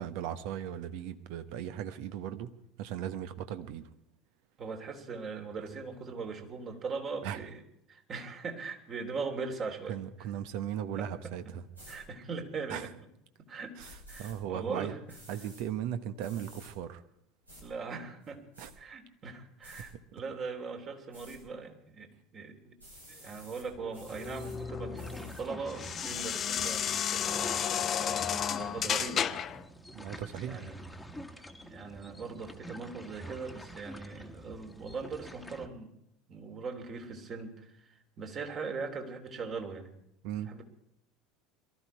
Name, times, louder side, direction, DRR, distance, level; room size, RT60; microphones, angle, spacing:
voice 1, 0.0-3.8 7.2-7.4 9.9-11.6 12.7-12.9 13.8-14.9 15.3-17.0 18.6-18.7 29.9-30.6 40.2-40.5, right 10 dB, 55° right, 10 dB, 1.3 m, -37 dB
voice 2, 4.6-7.6 7.9-10.0 10.9-11.5 11.9-12.9 13.4-13.8 14.1-15.2 17.6-18.4 18.8-22.8 23.1-29.3 30.4-30.8 31.6-35.9 36.3-40.0 40.5-40.6, right 4 dB, 35° right, 4 dB, 3.2 m, -40 dB
sound 1, 11.7-12.0 13.8-14.3 15.1-15.6 16.2-16.7 17.5-17.6 18.2-18.7 19.6-19.9 21.1-21.4 22.8-23.7 23.9-24.6 24.9-25.4 26.0-26.8, right 1 dB, 90° right, 6.9 m, -52 dB
sound 2, 23.8-29.6, left 9 dB, 35° left, 0.8 m, -33 dB
sound 3, 24.1-35.7, equal, 5° left, 1.6 m, -47 dB
22.5 x 13.5 x 4.7 m, 0.78 s
figure-of-eight pair, 70°, 0 cm